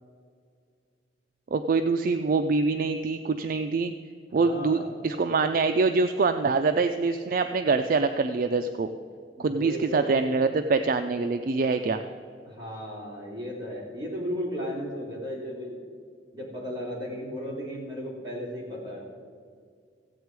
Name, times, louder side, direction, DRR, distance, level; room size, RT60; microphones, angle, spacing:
voice 1, 1.5-3.9 4.3-8.9 9.4-12.0, right 4 dB, 50° right, 8 dB, 0.4 m, -25 dB
voice 2, 4.4-5.0 9.3-10.3 12.4-15.8 16.3-19.1, equal, 25° right, -6 dB, 3.3 m, -35 dB
15.0 x 8.2 x 4.6 m, 2.2 s
head